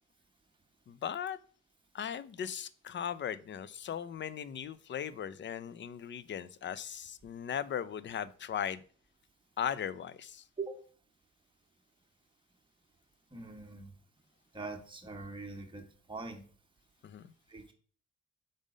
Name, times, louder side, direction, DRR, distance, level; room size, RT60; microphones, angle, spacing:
voice 1, 0.9-1.4 1.9-8.8 9.6-10.5 17.0-17.3, left 8 dB, 40° left, 0.5 m, -38 dB
voice 2, 13.3-13.9 14.5-15.8 16.1-16.4 17.5-17.7, right 3 dB, 15° right, 1.4 m, -42 dB
5.2 x 3.7 x 5.0 m
cardioid pair, 90°, 30 cm